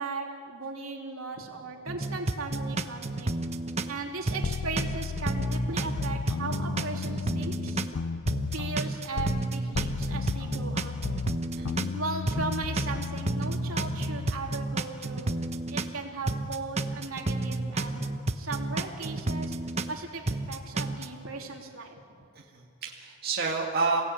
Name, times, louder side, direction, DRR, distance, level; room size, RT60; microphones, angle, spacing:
voice 1, 0.0-3.3 3.9-7.8 8.5-10.9 11.9-15.3 15.7-18.0 18.3-19.6 19.9-22.0, right 3 dB, 75° right, 1 dB, 3.3 m, -37 dB
sound 1, 1.9-4.0 4.3-8.0 8.3-12.0 12.3-16.0 16.3-20.0 20.3-21.1, right 2 dB, 30° right, 1.1 m, -31 dB
sound 2, 4.4-9.5 9.7-14.5, left 5 dB, 85° left, 0.5 m, -34 dB
voice 2, 11.6-11.9 22.4-24.0, right 4 dB, 45° right, -2 dB, 2.2 m, -30 dB
28.5 x 17.5 x 9.0 m, 2.4 s
head